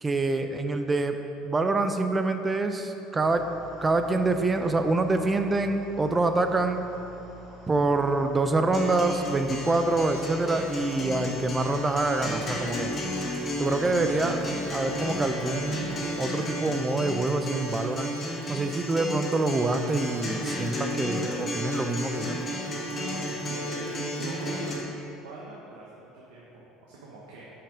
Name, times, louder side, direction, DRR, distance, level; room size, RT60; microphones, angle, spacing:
voice 1, 0.0-1.2 1.4-3.5 3.8-6.8 7.7-12.9 13.6-14.4 14.7-18.1 18.5-22.4, right 2 dB, 20° right, 7 dB, 0.5 m, -26 dB
sound 1, 3.2-16.1, right 1 dB, 50° right, 1.5 m, -48 dB
Acoustic guitar, 8.7-24.7, left 1 dB, 35° left, 1.4 m, -33 dB
voice 2, 23.1-24.8 25.1-27.5, right 2 dB, 85° right, -5 dB, 1.0 m, -42 dB
5.7 x 5.3 x 5.0 m, 3.0 s
supercardioid pair, 90°, 0 cm